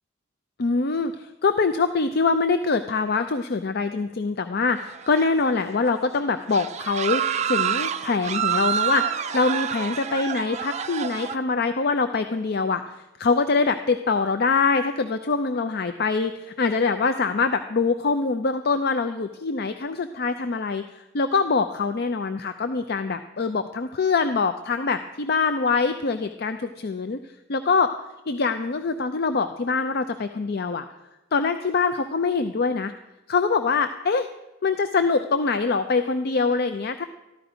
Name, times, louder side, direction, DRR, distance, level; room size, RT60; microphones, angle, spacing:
voice 1, 0.6-20.8 21.1-27.2 27.5-27.9 28.3-30.8 31.3-32.9 33.3-34.3 34.6-37.0, left 4 dB, 50° left, 9 dB, 0.5 m, -24 dB
sound 1, 4.8-5.6 5.9-6.1 6.5-11.4, right 8 dB, 35° right, 0.4 m, -27 dB
14.0 x 12.0 x 5.0 m, 1.0 s
head